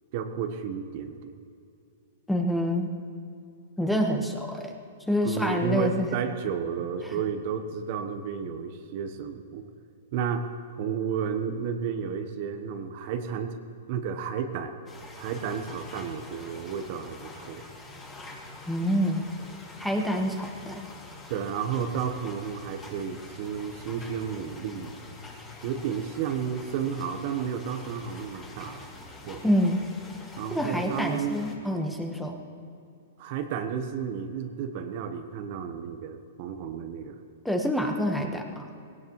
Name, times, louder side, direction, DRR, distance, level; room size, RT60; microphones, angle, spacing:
voice 1, 0.1-1.3 5.2-9.6 10.1-13.6 13.9-14.7 15.2-17.6 21.3-24.9 25.6-28.9 29.2-29.4 30.4-31.4 33.2-37.2, right 7 dB, 50° right, 7 dB, 1.2 m, -32 dB
voice 2, 2.3-2.9 3.8-4.7 5.1-6.1 18.7-19.2 19.8-20.8 29.4-29.8 30.5-32.4 37.4-38.7, equal, 5° left, 3 dB, 1.4 m, -27 dB
sound 1, 14.9-31.6, left 2 dB, 20° left, 2.7 m, -46 dB
18.0 x 17.5 x 3.2 m, 2.5 s
hypercardioid pair, 130°, 0 cm